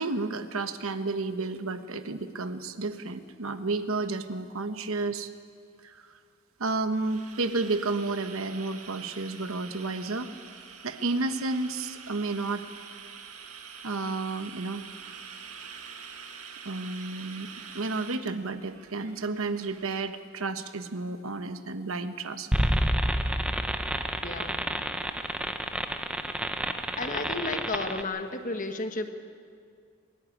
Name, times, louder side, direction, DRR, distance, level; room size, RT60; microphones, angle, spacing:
voice 1, 0.0-5.3 5.8-6.0 6.6-10.3 10.8-12.6 13.8-14.8 16.6-17.5 17.7-22.5, right 3 dB, 70° right, 9 dB, 1.0 m, -31 dB
sound 1, 6.7-20.1, right 6 dB, 85° right, 1.8 m, -46 dB
sound 2, 22.5-28.0, right 1 dB, 5° right, 0.8 m, -29 dB
voice 2, 24.2-24.7 27.0-29.1, left 2 dB, 35° left, 6 dB, 1.3 m, -33 dB
22.0 x 14.0 x 9.8 m, 2.3 s
head